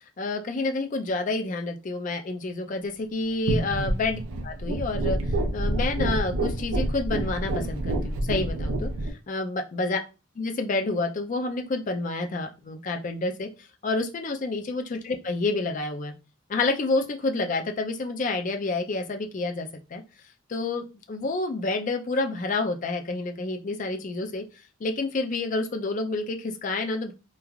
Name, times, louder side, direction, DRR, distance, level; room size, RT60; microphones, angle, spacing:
voice 1, 0.2-5.2 5.5-8.9 9.3-10.0 10.4-13.5 13.8-16.1 16.5-20.0 20.5-24.4 24.8-27.1, left 3 dB, 40° left, 4 dB, 0.4 m, -29 dB
sound 1, 3.5-9.1, right 1 dB, 80° right, 0.5 m, -27 dB
3.1 x 2.3 x 2.3 m, 0.30 s
head